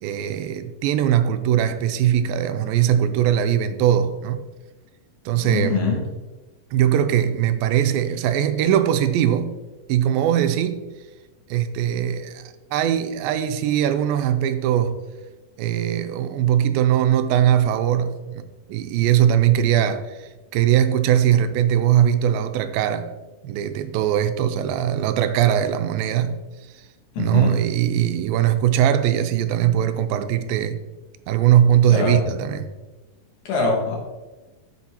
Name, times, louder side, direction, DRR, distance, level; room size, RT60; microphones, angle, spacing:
voice 1, 0.0-4.4 5.3-5.8 6.7-9.5 9.9-10.8 11.5-12.4 12.7-15.0 15.6-18.4 18.7-23.1 23.4-26.4 26.7-26.8 27.2-30.8 31.3-32.7, right 10 dB, 85° right, 2.3 m, -20 dB
voice 2, 5.4-6.1 27.1-27.6 31.9-32.2 33.5-34.0, left 3 dB, 65° left, 2.6 m, -23 dB
8.6 x 6.4 x 2.9 m
omnidirectional pair, 4.1 m